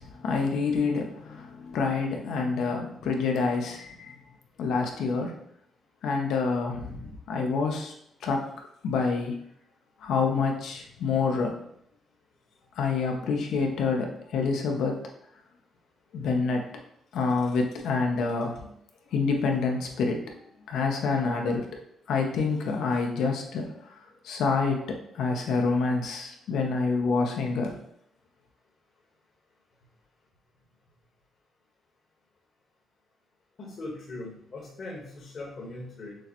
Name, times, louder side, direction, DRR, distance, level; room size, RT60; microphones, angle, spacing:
voice 1, 0.0-4.1 4.6-5.4 6.0-7.9 8.2-8.5 8.8-9.4 10.0-11.6 12.7-15.0 16.1-16.6 17.1-18.7 19.1-20.2 20.7-21.7 22.1-24.0 24.2-24.8 25.1-27.8, left 4 dB, 80° left, 2 dB, 0.7 m, -27 dB
voice 2, 33.6-36.2, left 2 dB, 50° left, -4 dB, 1.3 m, -40 dB
6.2 x 2.2 x 2.9 m, 0.73 s
cardioid pair, 90°, 0 cm